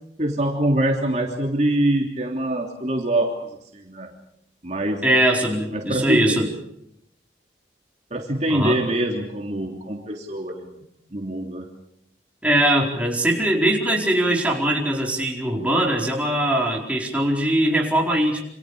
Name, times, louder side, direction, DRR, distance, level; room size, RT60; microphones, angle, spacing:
voice 1, 0.2-4.1 4.6-5.1 5.7-6.4 8.1-10.7 11.1-11.7, right 1 dB, 40° right, 1 dB, 3.1 m, -24 dB
voice 2, 5.0-6.5 8.5-8.8 12.4-18.4, right 1 dB, 10° right, -1 dB, 4.6 m, -21 dB
28.0 x 27.0 x 5.0 m, 0.76 s
head